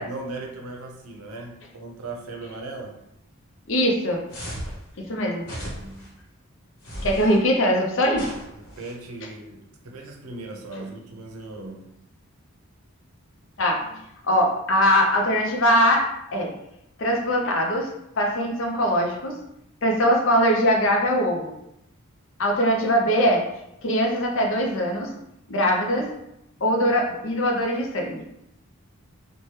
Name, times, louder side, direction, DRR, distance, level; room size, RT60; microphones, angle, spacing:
voice 1, 0.0-3.0 5.6-6.1 8.6-11.9, right 2 dB, 90° right, 1 dB, 0.6 m, -38 dB
voice 2, 3.7-4.2 5.1-5.5 7.0-8.3 13.6-13.8 14.2-16.0 16.3-16.5 17.0-17.9 18.2-19.3 19.8-21.5 22.4-23.4 23.8-25.1 25.5-26.1 26.6-28.2, equal, 60° left, 1 dB, 0.5 m, -21 dB
sound 1, 4.3-4.8 5.4-6.1 6.8-7.4 8.1-8.9, equal, 85° left, 1.0 m, -35 dB
2.8 x 2.2 x 3.1 m, 0.82 s
head